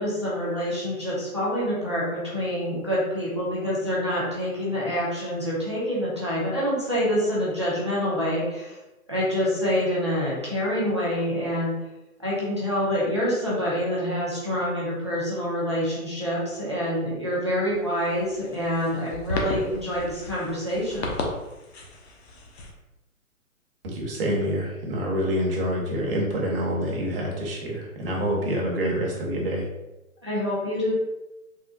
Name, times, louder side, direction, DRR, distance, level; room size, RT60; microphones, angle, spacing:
voice 1, 0.0-8.8 9.1-11.7 12.2-21.1 30.2-30.9, equal, 20° right, -8 dB, 0.4 m, -26 dB
sound 1, 17.5-22.7, left 2 dB, 50° left, 0.6 m, -35 dB
voice 2, 23.8-29.6, equal, 40° right, -2 dB, 0.8 m, -27 dB
3.5 x 2.0 x 2.3 m, 1.0 s
hypercardioid pair, 145°, 44 cm